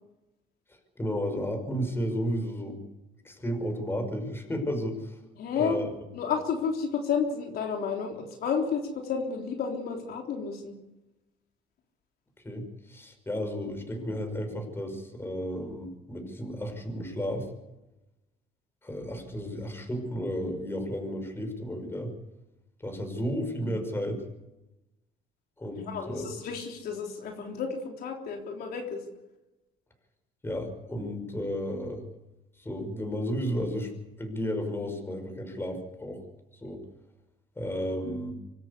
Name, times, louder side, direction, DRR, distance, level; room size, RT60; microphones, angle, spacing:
voice 1, 1.0-2.8 3.2-5.2 5.5-5.9 12.4-17.5 18.8-22.1 22.8-24.2 25.6-26.3 30.4-32.0 32.6-33.9 34.2-36.2 36.5-36.8 37.6-38.3, equal, 15° left, 5 dB, 5.7 m, -33 dB
voice 2, 5.4-5.8 6.1-10.7 25.8-29.0, left 6 dB, 65° left, 1 dB, 3.7 m, -31 dB
25.5 x 13.5 x 8.3 m, 0.98 s
cardioid pair, 110°, 17 cm